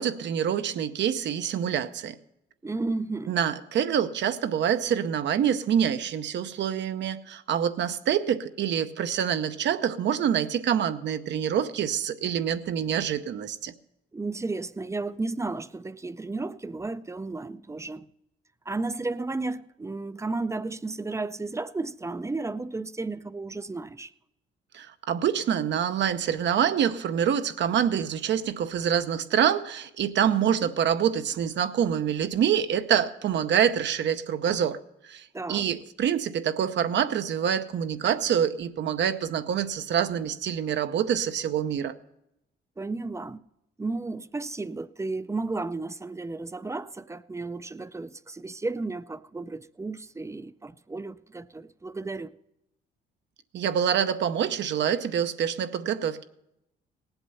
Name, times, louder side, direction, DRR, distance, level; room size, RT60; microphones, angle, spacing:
voice 1, 0.0-2.2 3.3-13.7 24.7-34.8 35.0-42.0 53.5-56.2, right 9 dB, 65° right, 0.7 m, -26 dB
voice 2, 2.6-3.4 14.1-18.1 18.7-24.1 35.3-35.7 42.8-43.4 43.8-52.3, right 3 dB, 15° right, 0.4 m, -33 dB
18.0 x 8.0 x 5.6 m
cardioid pair, 90°, 20 cm